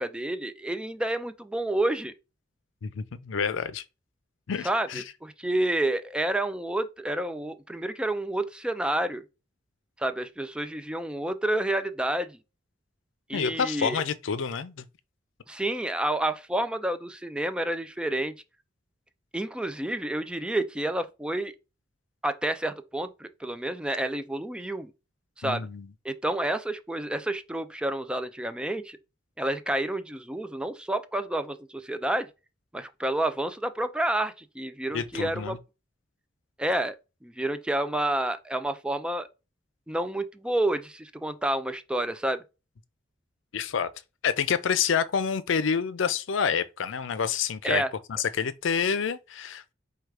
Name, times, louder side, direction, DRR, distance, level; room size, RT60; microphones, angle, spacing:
voice 1, 0.0-2.1 4.6-9.2 10.0-12.4 13.3-14.0 15.5-18.3 19.3-21.5 22.2-24.9 25.4-25.7 26.0-29.0 29.4-32.3 32.7-35.6 36.6-37.0 37.2-39.3 39.9-42.4 47.6-47.9, right 1 dB, 5° right, 0.3 m, -29 dB
voice 2, 2.8-3.8 4.5-5.0 13.3-14.8 25.4-25.9 34.9-35.6 43.5-43.9 44.2-47.8 48.1-49.7, left 6 dB, 80° left, 0.5 m, -28 dB
4.5 x 2.3 x 4.7 m
head